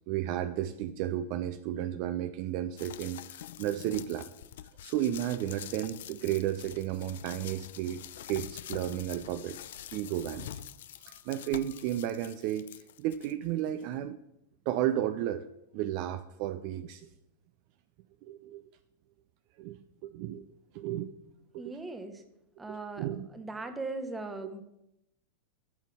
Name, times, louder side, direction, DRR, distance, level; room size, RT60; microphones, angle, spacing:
voice 1, 0.1-4.3 4.8-10.6 11.0-14.2 14.7-15.5 15.7-17.1 18.2-18.6 19.6-20.5 20.7-21.1 21.5-21.7 22.7-23.3 24.4-24.5, right 12 dB, 45° right, 11 dB, 0.4 m, -33 dB
sound 1, 2.8-13.3 13.8-13.9, left 11 dB, 55° left, 0.3 m, -46 dB
voice 2, 21.6-22.2 22.6-24.6, right 3 dB, 10° right, 7 dB, 1.0 m, -39 dB
12.5 x 5.6 x 3.6 m, 0.83 s
figure-of-eight pair, 90°, 0 cm